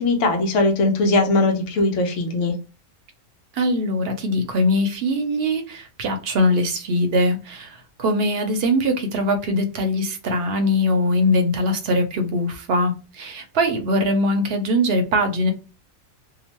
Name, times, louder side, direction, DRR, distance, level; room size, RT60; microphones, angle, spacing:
voice 1, 0.0-2.5, left 2 dB, 70° left, 3 dB, 1.0 m, -20 dB
voice 2, 3.5-15.5, left 1 dB, 60° right, 6 dB, 0.7 m, -21 dB
2.9 x 2.1 x 2.9 m, 0.32 s
omnidirectional pair, 1.4 m